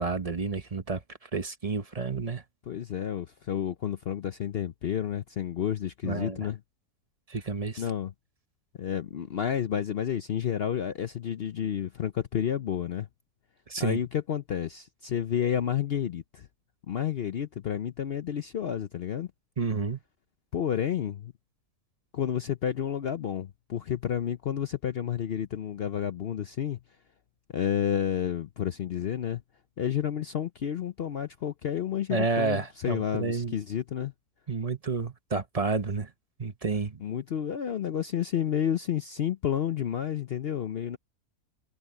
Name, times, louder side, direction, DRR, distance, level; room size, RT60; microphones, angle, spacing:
voice 1, 0.0-2.4 6.0-6.5 7.3-7.8 13.7-14.0 19.6-20.0 32.1-33.6 34.5-36.1 36.4-37.0, right 4 dB, 30° right, 0.8 m, -30 dB
voice 2, 2.7-6.6 7.8-8.1 8.8-13.1 13.8-16.5 16.9-19.3 20.5-21.3 22.1-26.8 27.5-29.4 29.8-34.1 37.0-41.0, left 9 dB, 65° left, 0.6 m, -30 dB
omnidirectional pair, 1.7 m